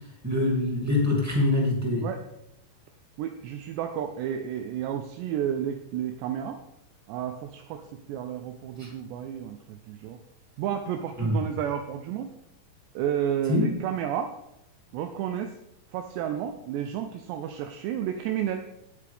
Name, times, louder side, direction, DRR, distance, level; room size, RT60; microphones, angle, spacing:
voice 1, 0.2-2.1 8.8-8.9 11.2-11.5 13.5-13.7, left 2 dB, 20° right, -4 dB, 0.4 m, -24 dB
voice 2, 3.2-6.6 7.1-10.2 10.6-12.3 13.0-14.3 14.9-15.6 15.9-18.7, right 9 dB, 80° right, 6 dB, 2.7 m, -31 dB
18.5 x 8.4 x 3.5 m, 0.81 s
omnidirectional pair, 5.3 m